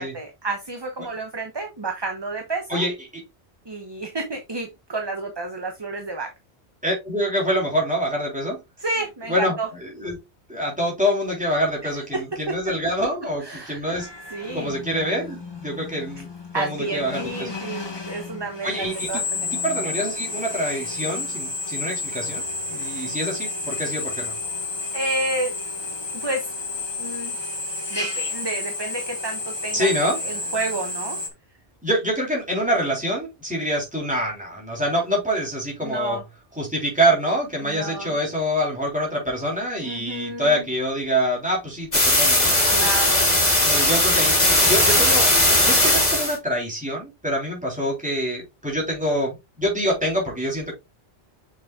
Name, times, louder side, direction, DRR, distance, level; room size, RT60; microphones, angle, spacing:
voice 1, 0.0-2.8 3.7-6.3 8.8-9.7 13.4-13.8 14.3-14.8 16.5-19.6 22.7-23.1 24.9-25.5 26.1-26.5 27.0-27.6 27.9-29.9 30.2-31.2 35.8-36.2 37.6-38.1 39.8-40.6 42.7-43.4, right 2 dB, 25° right, 0.9 m, -30 dB
voice 2, 2.7-3.2 6.8-8.6 9.3-10.2 10.5-14.1 14.5-16.3 16.5-17.5 18.6-24.3 29.7-30.2 31.8-36.2 36.6-42.6 43.6-50.7, equal, 5° right, 3.5 m, -26 dB
Drill, 13.9-31.3, left 3 dB, 25° left, 1.4 m, -31 dB
sound 1, 41.9-46.4, left 1 dB, 40° left, 3.1 m, -18 dB
6.8 x 6.2 x 2.4 m
omnidirectional pair, 1.1 m